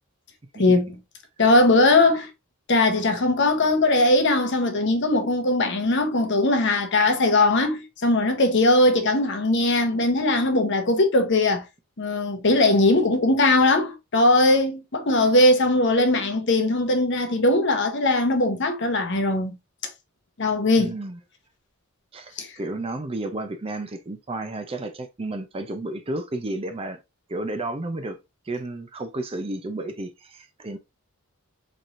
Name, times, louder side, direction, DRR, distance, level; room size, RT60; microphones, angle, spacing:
voice 1, 0.6-1.0 1.4-2.3 2.7-11.6 12.0-19.5 20.4-20.9 22.4-22.5, left 2 dB, 55° left, 0.8 m, -20 dB
voice 2, 20.8-21.2 22.1-27.0 27.3-28.2 28.5-30.8, right 2 dB, 25° right, 0.5 m, -32 dB
4.2 x 3.2 x 2.5 m
head